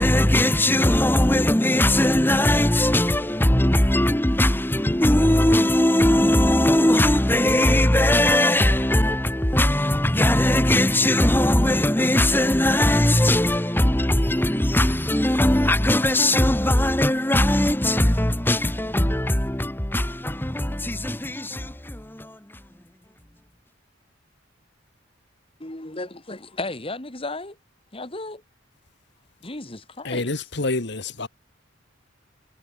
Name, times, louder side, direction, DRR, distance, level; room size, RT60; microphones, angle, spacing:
voice 1, 0.0-22.6, left 1 dB, 10° left, 1.4 m, -20 dB
voice 2, 25.6-27.6 27.9-28.4 29.4-30.3, left 2 dB, 30° left, 2.6 m, -34 dB
voice 3, 30.0-31.3, left 2 dB, 60° left, 1.7 m, -27 dB
head